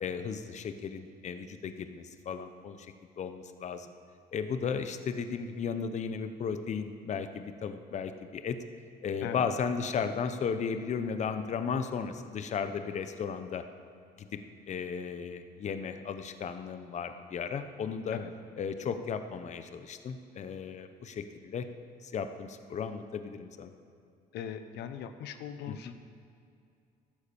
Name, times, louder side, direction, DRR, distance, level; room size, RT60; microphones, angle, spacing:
voice 1, 0.0-3.9 4.3-8.6 9.0-13.6 14.2-14.3 14.7-18.2 18.6-21.7 22.0-23.7 25.7-26.0, left 6 dB, 45° left, 9 dB, 0.9 m, -35 dB
voice 2, 24.3-26.0, left 9 dB, 80° left, 9 dB, 0.9 m, -40 dB
14.0 x 12.0 x 7.0 m, 2.4 s
cardioid pair, 110°, 17 cm